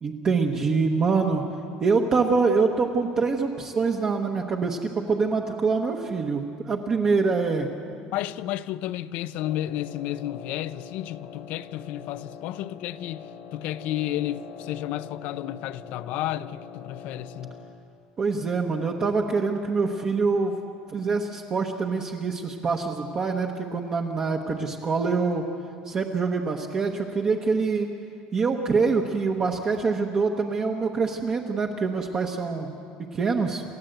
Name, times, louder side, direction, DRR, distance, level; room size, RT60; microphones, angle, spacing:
voice 1, 0.0-1.5 1.8-7.7 18.2-20.6 20.9-25.4 25.9-27.9 28.3-32.7 33.1-33.6, right 4 dB, 25° right, 1.0 m, -25 dB
voice 2, 8.1-17.6, left 13 dB, 50° left, 0.6 m, -32 dB
Wind instrument woodwind instrument, 9.3-17.9, left 7 dB, 85° left, 2.3 m, -43 dB
29.0 x 14.0 x 7.9 m
cardioid pair, 175°, 3 cm